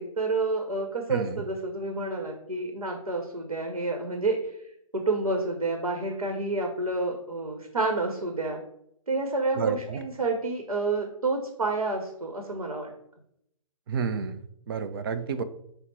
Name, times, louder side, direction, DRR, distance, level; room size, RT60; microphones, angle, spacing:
voice 1, 0.0-4.6 4.9-8.6 9.1-12.9, right 3 dB, 80° right, 3 dB, 0.8 m, -29 dB
voice 2, 9.6-10.0 13.9-14.4 14.7-15.4, right 6 dB, 40° right, 11 dB, 0.4 m, -30 dB
5.7 x 2.0 x 4.3 m, 0.75 s
figure-of-eight pair, 130°, 18 cm